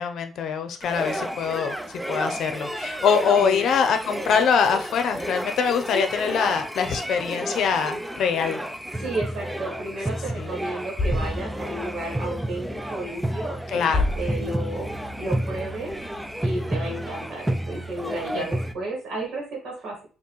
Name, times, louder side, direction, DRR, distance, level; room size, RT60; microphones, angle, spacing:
voice 1, 0.0-1.8 2.1-8.6 10.4-10.5 13.7-14.1 18.3-18.4, left 6 dB, 70° left, 7 dB, 0.6 m, -23 dB
sound 1, 0.8-18.7, right 1 dB, 5° right, 0.4 m, -31 dB
voice 2, 3.4-3.7 5.9-6.0 8.9-13.9 14.2-15.9 16.4-20.1, right 2 dB, 70° right, -2 dB, 1.7 m, -32 dB
sound 2, 11.0-16.6, left 2 dB, 40° left, 0.8 m, -32 dB
4.4 x 2.9 x 3.1 m, 0.37 s
cardioid pair, 90°, 0 cm